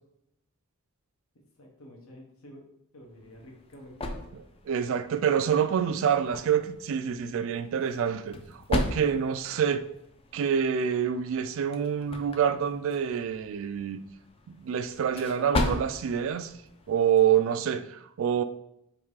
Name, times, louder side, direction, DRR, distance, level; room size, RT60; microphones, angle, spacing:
voice 1, 1.3-2.7 2.9-4.2, equal, 80° left, 1 dB, 1.0 m, -49 dB
sound 1, 3.1-17.6, left 2 dB, 25° left, 0.4 m, -37 dB
voice 2, 4.3-9.8 10.3-14.0 14.5-16.5 16.9-18.4, right 8 dB, 65° right, 11 dB, 0.3 m, -27 dB
3.5 x 2.7 x 4.6 m, 0.79 s
head